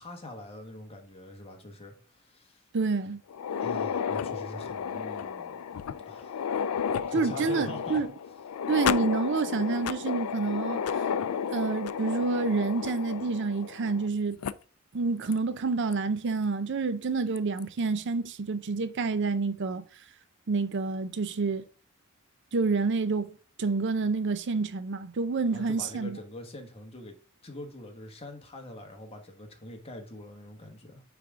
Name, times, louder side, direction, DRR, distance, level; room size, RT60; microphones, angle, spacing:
voice 1, 0.0-2.6 3.6-5.6 6.0-6.6 7.1-8.0 25.5-31.0, left 1 dB, 30° left, 1.3 m, -43 dB
voice 2, 2.7-3.2 7.1-8.1 8.7-11.1 11.5-14.4 14.9-19.8 20.5-21.6 22.5-26.2, right 4 dB, 55° right, 0.5 m, -28 dB
sound 1, 3.3-14.1 14.4-14.5 15.3-15.4 15.9-16.0 17.4-17.6, left 7 dB, 80° left, 0.4 m, -32 dB
9.3 x 3.5 x 3.6 m
head